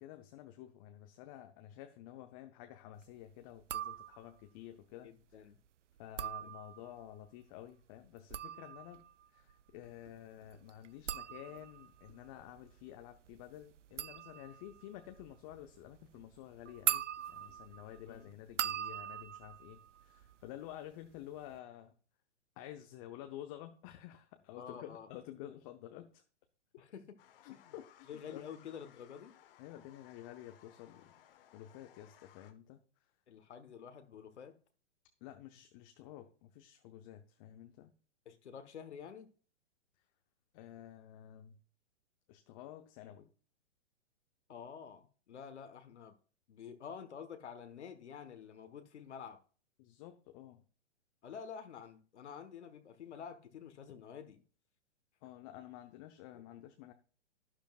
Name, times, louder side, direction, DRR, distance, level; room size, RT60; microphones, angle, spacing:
voice 1, 0.0-5.1 6.0-9.0 9.3-21.9 22.6-26.2 26.7-26.8 27.4-28.4 29.6-31.1 31.5-32.8 35.2-37.9 40.5-41.6 42.3-43.3 49.8-50.6 55.2-56.9, left 12 dB, 30° left, 0.7 m, -51 dB
sound 1, 3.6-4.4 6.0-7.1 8.1-20.8 21.1-21.6, right 10 dB, 85° right, 0.5 m, -42 dB
voice 2, 5.0-5.6 6.2-6.6 18.1-18.3 24.6-25.1 26.8-27.2 27.5-27.7 28.1-29.3 33.3-34.6 38.2-39.3 44.5-46.1 46.5-49.4 51.2-54.4 56.3-56.4, left 7 dB, 70° left, 1.4 m, -49 dB
sound 2, 27.2-32.5, left 11 dB, 50° left, 1.4 m, -63 dB
11.5 x 10.0 x 2.4 m
hypercardioid pair, 125°, 36 cm